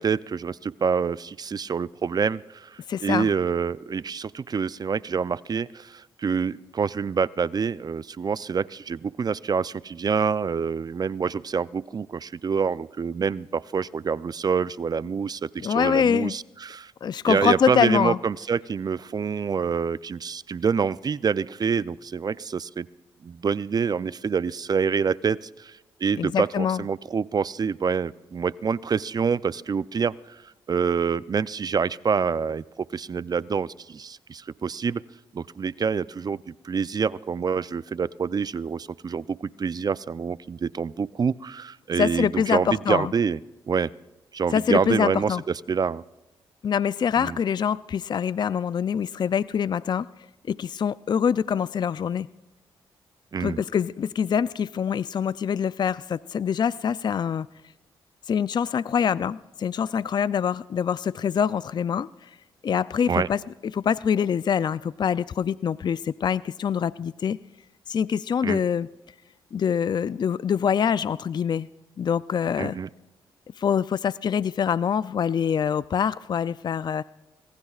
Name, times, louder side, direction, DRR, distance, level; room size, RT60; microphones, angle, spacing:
voice 1, 0.0-16.9 17.2-22.9 23.2-35.0 35.3-43.4 43.7-43.9 44.3-45.4 45.7-46.0 47.2-47.4 53.3-53.6 63.1-63.3 68.4-68.6 72.6-72.9, right 6 dB, 45° right, 18 dB, 0.5 m, -27 dB
voice 2, 2.9-3.3 15.6-16.3 17.0-18.2 26.2-26.8 42.0-43.1 44.5-45.4 46.6-50.1 50.5-52.3 53.4-57.5 58.3-62.3 62.6-63.4 63.7-67.4 67.9-68.9 69.5-71.7 72.0-72.8 73.6-77.0, left 7 dB, 50° left, 17 dB, 0.4 m, -25 dB
26.0 x 19.0 x 2.4 m, 1.0 s
supercardioid pair, 60°, 10 cm